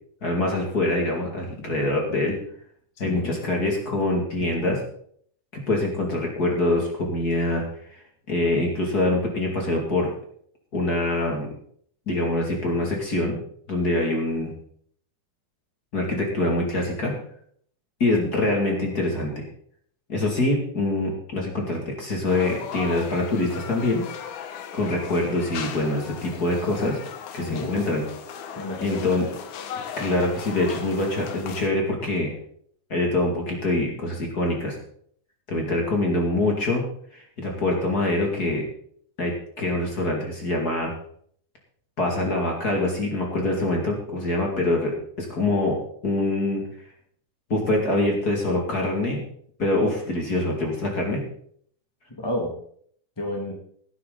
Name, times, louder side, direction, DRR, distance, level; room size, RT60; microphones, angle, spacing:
voice 1, 0.2-2.4 3.0-4.8 5.5-7.6 8.3-10.1 10.7-11.5 12.1-13.4 13.7-14.5 15.9-17.2 18.0-19.4 20.1-24.0 24.7-27.0 27.3-28.0 28.8-29.3 30.0-32.4 32.9-34.8 35.5-36.8 37.1-38.6 39.2-40.9 42.0-46.6 47.5-49.2 49.6-51.2, left 2 dB, 30° left, 0 dB, 2.5 m, -24 dB
voice 2, 3.0-3.3 27.4-27.7 28.6-29.0 52.1-52.5 53.2-53.5, left 1 dB, 10° left, 0 dB, 1.7 m, -30 dB
sound 1, 22.3-31.7, left 7 dB, 70° left, 2.4 m, -37 dB
17.5 x 9.8 x 4.0 m, 0.62 s
omnidirectional pair, 3.7 m